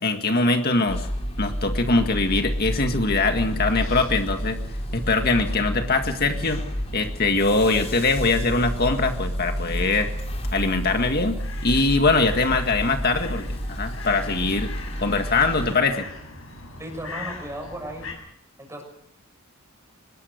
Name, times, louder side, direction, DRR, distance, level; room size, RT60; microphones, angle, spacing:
voice 1, 0.0-1.1 1.4-4.6 4.9-6.6 6.9-10.1 10.5-14.7 15.0-16.1, left 3 dB, 50° left, 5 dB, 1.9 m, -22 dB
sound 1, 0.9-15.8, equal, 30° left, 4.5 m, -30 dB
sound 2, 1.6-18.1, left 2 dB, 75° left, 7.2 m, -41 dB
voice 2, 16.8-18.1 18.6-18.8, right 1 dB, 15° right, 4 dB, 6.7 m, -35 dB
25.0 x 20.5 x 6.6 m, 0.74 s
head